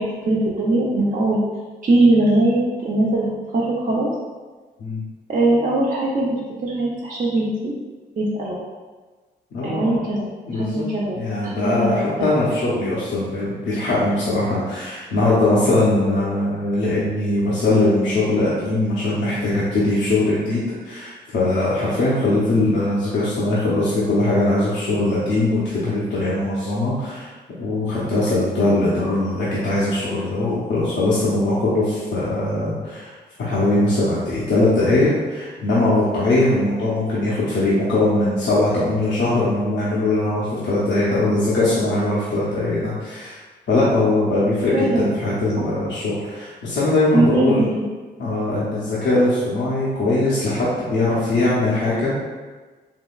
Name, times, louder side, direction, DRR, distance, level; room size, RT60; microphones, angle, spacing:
voice 1, 0.0-1.4 1.8-4.1 5.3-7.7 8.2-8.6 9.6-10.2 10.5-12.3 44.7-45.1 47.1-47.8, right 2 dB, 45° right, -6 dB, 0.7 m, -21 dB
voice 2, 9.5-10.0 10.5-10.8 11.1-27.3 27.6-33.1 33.4-43.4 43.7-47.7 48.2-52.1, left 2 dB, 75° left, -9 dB, 0.8 m, -21 dB
3.7 x 2.9 x 2.4 m, 1.3 s
supercardioid pair, 50°, 19 cm